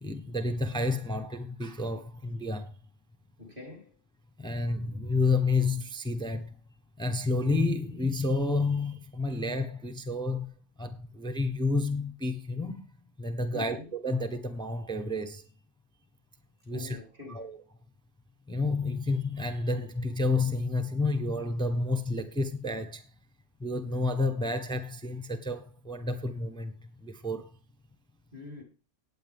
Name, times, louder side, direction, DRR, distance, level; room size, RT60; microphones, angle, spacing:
voice 1, 0.0-2.7 4.4-6.5 7.0-10.5 10.8-12.8 13.2-15.5 16.7-17.0 17.3-17.6 18.5-23.1 23.6-26.7 27.0-27.5, left 3 dB, 5° left, 1.1 m, -30 dB
voice 2, 3.4-4.0 13.5-13.9 16.7-17.5 28.3-28.6, left 3 dB, 35° right, 4.2 m, -44 dB
17.0 x 9.1 x 3.6 m
omnidirectional pair, 1.5 m